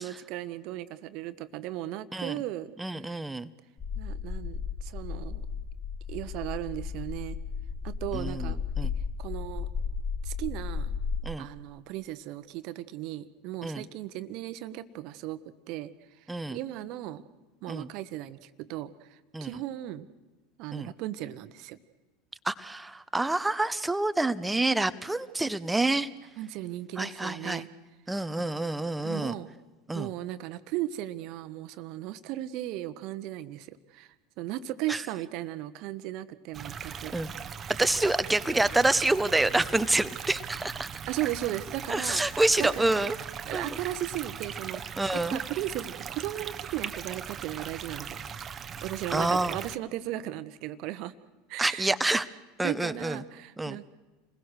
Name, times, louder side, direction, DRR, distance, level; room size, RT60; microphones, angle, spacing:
voice 1, 0.0-2.7 3.0-3.2 3.9-5.4 6.1-7.4 7.8-8.9 9.2-9.7 10.2-11.0 11.4-15.9 16.5-17.2 17.6-20.1 20.6-21.8 26.4-27.7 29.0-29.5 29.9-34.1 34.4-37.1 37.6-37.7 41.1-42.2 42.6-43.1 43.5-48.4 48.8-51.1 51.5-52.0 52.6-53.9, right 14 dB, 50° right, 13 dB, 1.2 m, -36 dB
voice 2, 2.8-3.5 8.1-8.9 11.2-11.5 13.6-13.8 16.3-16.6 17.7-17.9 19.3-19.5 20.7-20.9 22.4-26.1 27.0-27.6 28.1-29.3 29.9-30.1 34.9-35.0 37.1-37.3 37.8-40.9 41.9-43.2 43.5-43.8 45.0-45.4 49.1-49.6 51.6-52.3 52.6-53.2 53.6-53.8, right 2 dB, 10° right, 14 dB, 1.1 m, -27 dB
sound 1, 3.8-11.2, left 6 dB, 25° left, 1.3 m, -34 dB
sound 2, 36.5-49.8, right 7 dB, 30° right, 1.2 m, -39 dB
29.5 x 21.0 x 6.5 m, 1.2 s
figure-of-eight pair, 80°, 0 cm